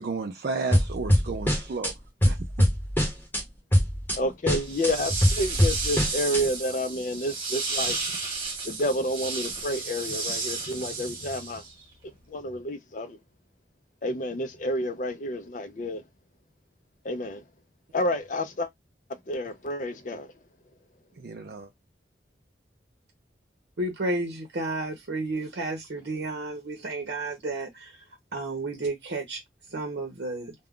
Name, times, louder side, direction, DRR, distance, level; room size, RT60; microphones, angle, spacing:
voice 1, 0.0-1.9 2.2-2.7 21.2-21.7, right 4 dB, 55° right, 0.4 m, -33 dB
sound 1, 0.7-1.9 2.2-3.4 3.7-4.2 4.5-6.4, equal, 10° left, 0.9 m, -23 dB
voice 2, 4.2-8.2 8.6-11.6 12.3-13.2 14.0-16.0 17.0-17.4 17.9-18.7 19.3-20.3, left 1 dB, 45° left, 0.5 m, -30 dB
sound 2, 4.6-11.8, right 4 dB, 30° right, 1.2 m, -32 dB
voice 3, 23.8-28.0 28.3-29.4 29.7-30.5, right 2 dB, 70° right, 0.8 m, -32 dB
2.3 x 2.2 x 3.6 m
head